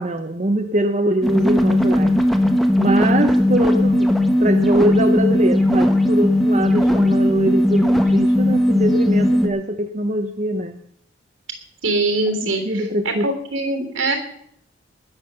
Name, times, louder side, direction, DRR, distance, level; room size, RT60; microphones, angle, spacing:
voice 1, 0.0-2.1 2.8-4.1 4.4-10.8 12.4-13.3, right 1 dB, 35° right, 5 dB, 0.8 m, -22 dB
sound 1, 1.2-9.5, left 1 dB, ahead, 1.1 m, -17 dB
voice 2, 11.8-12.6 13.0-14.2, right 2 dB, 75° right, 5 dB, 3.2 m, -22 dB
19.5 x 7.3 x 6.8 m, 0.69 s
head